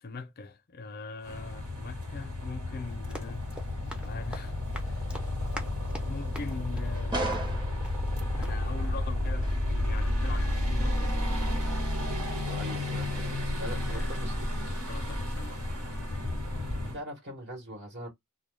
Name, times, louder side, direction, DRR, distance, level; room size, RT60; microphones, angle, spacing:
voice 1, 0.0-3.5 3.8-5.3 5.9-7.4 8.2-11.2 13.9-14.1 14.9-15.7, left 4 dB, 45° left, 0.5 m, -42 dB
sound 1, 1.2-17.0, left 1 dB, 90° right, 1.4 m, -31 dB
Run, 2.9-8.2 8.4-8.6, equal, 5° right, 0.5 m, -45 dB
sound 2, 6.9-12.8 13.2-13.4, right 2 dB, 20° right, 0.8 m, -39 dB
voice 2, 12.5-13.3 13.6-14.3 16.9-18.1, equal, 55° right, 1.1 m, -41 dB
2.2 x 2.2 x 3.1 m
head